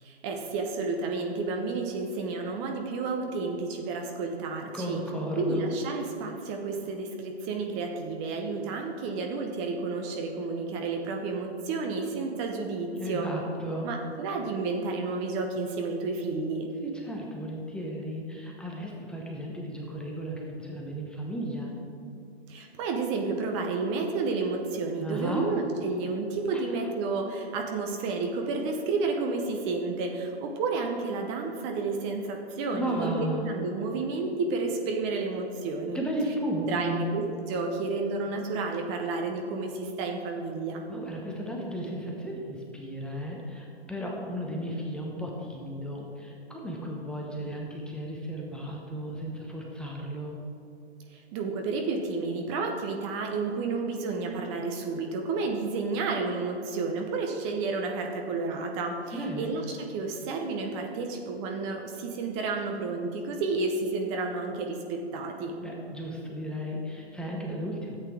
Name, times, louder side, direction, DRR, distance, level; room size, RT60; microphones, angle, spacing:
voice 1, 0.0-5.0 5.4-13.3 13.8-16.7 22.5-36.0 36.7-37.2 37.5-40.8 51.1-65.5, right 3 dB, 25° right, 3 dB, 0.8 m, -31 dB
voice 2, 4.6-5.7 12.9-13.9 16.8-21.8 25.0-25.5 26.5-26.9 32.7-33.5 35.9-37.0 40.9-50.3 59.1-59.5 65.6-68.0, right 1 dB, 5° left, -2 dB, 0.8 m, -34 dB
13.0 x 8.2 x 3.6 m, 2.7 s
figure-of-eight pair, 125°, 33 cm